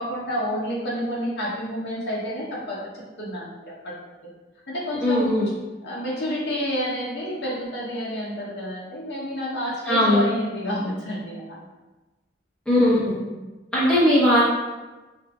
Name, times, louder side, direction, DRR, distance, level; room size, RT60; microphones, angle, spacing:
voice 1, 0.0-2.9 3.2-3.9 4.7-5.4 5.8-11.6 13.2-13.3, equal, 75° left, -6 dB, 0.8 m, -29 dB
voice 2, 5.0-5.5 9.9-10.2 12.7-13.1 13.7-14.4, left 1 dB, 5° left, -8 dB, 0.8 m, -18 dB
4.9 x 2.7 x 2.3 m, 1.2 s
head